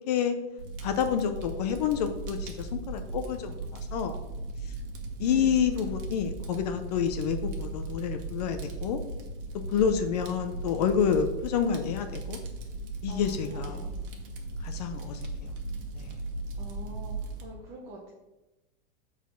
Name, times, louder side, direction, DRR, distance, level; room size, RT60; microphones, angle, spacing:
voice 1, 0.1-0.4 0.8-4.2 4.6-4.7 5.2-9.0 9.7-12.4 13.0-13.8 14.6-15.5 16.0-16.1, left 7 dB, 40° left, 8 dB, 0.5 m, -28 dB
Fire, 0.6-17.4, right 2 dB, 60° right, 1.5 m, -37 dB
voice 2, 5.2-5.7 13.1-13.2 13.5-13.9 16.5-18.1, right 2 dB, 25° right, -3 dB, 0.9 m, -45 dB
7.2 x 4.1 x 5.6 m, 1.0 s
supercardioid pair, 180°, 31 cm